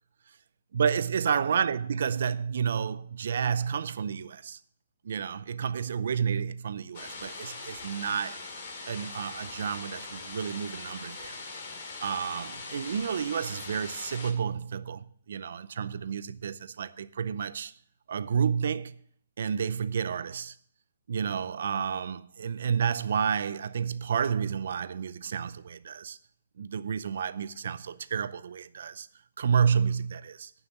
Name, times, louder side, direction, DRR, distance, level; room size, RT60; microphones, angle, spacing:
voice 1, 0.7-4.6 5.0-8.5 8.9-11.4 12.0-17.7 18.1-19.0 19.4-20.5 21.1-26.2 26.6-29.1 29.4-30.5, right 7 dB, 65° right, 0.6 m, -30 dB
sound 1, 6.9-14.3, left 3 dB, 45° left, 2.4 m, -41 dB
9.8 x 5.7 x 7.8 m
hypercardioid pair, 155°, 0 cm